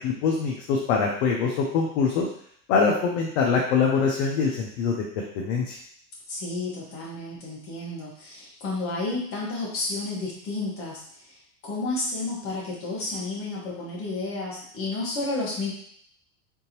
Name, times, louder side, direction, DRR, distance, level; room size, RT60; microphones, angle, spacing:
voice 1, 0.0-2.3 2.7-5.8, left 5 dB, 45° left, -1 dB, 0.7 m, -24 dB
voice 2, 6.3-11.0 11.6-15.7, left 2 dB, 25° left, -5 dB, 1.4 m, -31 dB
3.7 x 3.7 x 2.9 m, 0.64 s
supercardioid pair, 150°, 49 cm